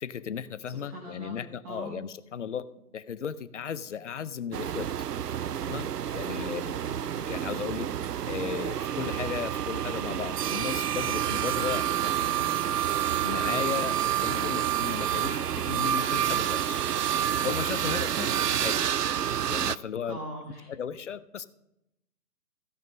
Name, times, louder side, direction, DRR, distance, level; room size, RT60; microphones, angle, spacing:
voice 1, 0.0-2.7 2.9-4.9 5.6-6.6 7.3-7.9 8.2-12.6 13.2-16.8 17.4-18.3 18.6-18.9 19.5-20.2 20.7-21.5, left 7 dB, 50° left, 15 dB, 0.7 m, -35 dB
voice 2, 0.8-1.4 1.6-2.0 6.3-7.1 17.9-18.4 20.1-20.7, right 1 dB, 15° right, -1 dB, 0.9 m, -41 dB
sound 1, 4.5-19.8, right 10 dB, 90° right, 0.5 m, -29 dB
15.5 x 5.9 x 5.3 m, 0.87 s
figure-of-eight pair, 145°, 46 cm